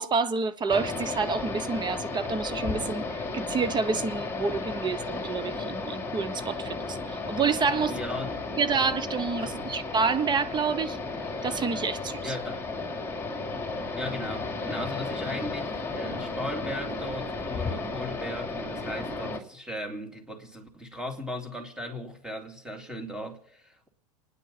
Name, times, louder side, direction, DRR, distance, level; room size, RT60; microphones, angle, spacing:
voice 1, 0.0-7.9 8.6-11.0 11.4-12.3, right 5 dB, 25° right, 1.0 m, -28 dB
sound 1, 0.7-19.4, left 3 dB, 10° left, 2.7 m, -34 dB
voice 2, 7.8-8.5 9.4-9.7 12.2-12.7 13.9-23.9, left 1 dB, 5° right, 2.8 m, -37 dB
29.0 x 10.0 x 4.1 m
hypercardioid pair, 95°, 19 cm